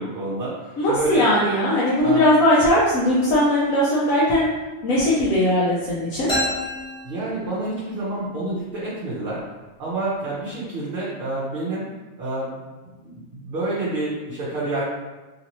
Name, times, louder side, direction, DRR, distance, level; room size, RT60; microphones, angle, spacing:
voice 1, 0.0-1.2 2.0-2.3 7.0-9.4 9.8-11.9 12.2-12.7 13.0-14.8, right 2 dB, 55° right, -8 dB, 0.8 m, -28 dB
voice 2, 0.8-4.5 4.8-6.3, left 1 dB, 80° left, -7 dB, 1.0 m, -19 dB
sound 1, 6.3-8.0, left 1 dB, 5° left, 0.7 m, -29 dB
3.0 x 2.7 x 2.9 m, 1.2 s
omnidirectional pair, 1.4 m